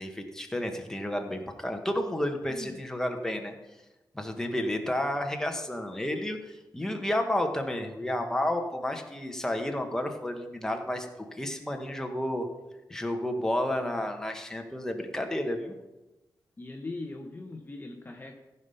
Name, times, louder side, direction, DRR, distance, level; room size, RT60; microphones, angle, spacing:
voice 1, 0.0-3.5 4.1-12.5 12.9-15.7, left 1 dB, 5° left, 4 dB, 1.1 m, -31 dB
voice 2, 2.4-2.9 15.2-15.4 16.6-18.3, left 2 dB, 25° left, 3 dB, 0.8 m, -40 dB
14.5 x 5.5 x 5.6 m, 1.0 s
wide cardioid pair, 145°, 8 cm